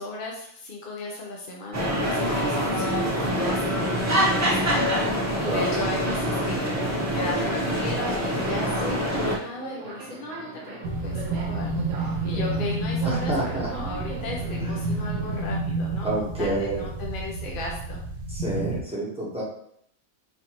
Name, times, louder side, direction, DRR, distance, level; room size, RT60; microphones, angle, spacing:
voice 1, 0.0-18.0, left 2 dB, 50° left, -2 dB, 0.7 m, -36 dB
sound 1, 1.7-9.4, equal, 25° right, 0.4 m, -25 dB
voice 2, 5.4-5.7 13.0-13.7 14.4-14.8 16.0-16.8 18.3-19.4, right 1 dB, 5° right, -6 dB, 1.0 m, -29 dB
Subway metro underground, 6.0-15.6, right 4 dB, 70° right, 1.0 m, -41 dB
sound 2, 10.8-18.8, right 2 dB, 85° right, 1.1 m, -30 dB
4.2 x 2.6 x 2.9 m, 0.66 s
omnidirectional pair, 1.5 m